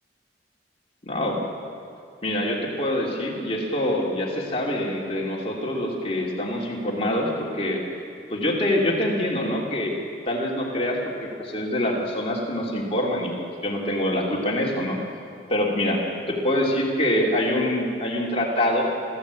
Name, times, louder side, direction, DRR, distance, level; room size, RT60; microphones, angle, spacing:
voice 1, 1.0-1.4 2.2-7.8 8.3-9.9 10.2-15.0 15.5-16.0 16.3-18.9, left 1 dB, 35° left, -2 dB, 3.0 m, -25 dB
27.5 x 15.0 x 8.4 m, 2.4 s
head